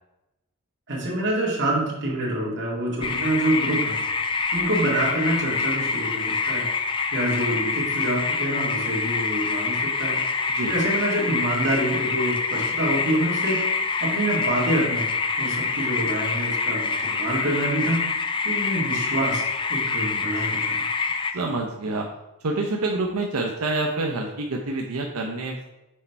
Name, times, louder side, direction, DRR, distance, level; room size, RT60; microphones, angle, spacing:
voice 1, 0.9-4.0 4.5-6.7 7.1-10.2 10.7-13.6 14.0-15.1 15.4-18.1 18.4-19.4 19.7-20.8, right 1 dB, 55° right, -4 dB, 2.0 m, -26 dB
sound 1, 3.0-21.3, left 4 dB, 20° left, 0.4 m, -26 dB
voice 2, 21.3-22.1 22.4-25.6, right 2 dB, 90° right, 1 dB, 0.7 m, -27 dB
6.4 x 4.2 x 4.5 m, 0.96 s
head